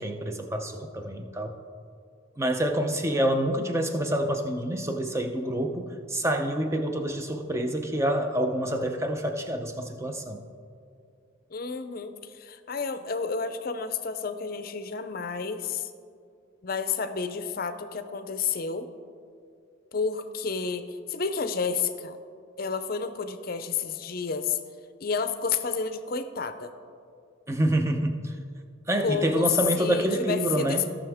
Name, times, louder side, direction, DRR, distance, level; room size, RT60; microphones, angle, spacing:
voice 1, 0.0-1.5 2.4-10.4 27.5-28.3 28.9-30.9, right 1 dB, 15° right, 5 dB, 0.6 m, -27 dB
voice 2, 11.5-15.9 16.6-18.9 19.9-22.2 22.6-24.6 25.0-26.7 29.0-29.5 29.8-30.9, left 5 dB, 45° left, 10 dB, 0.5 m, -30 dB
16.5 x 6.1 x 3.5 m, 2.3 s
head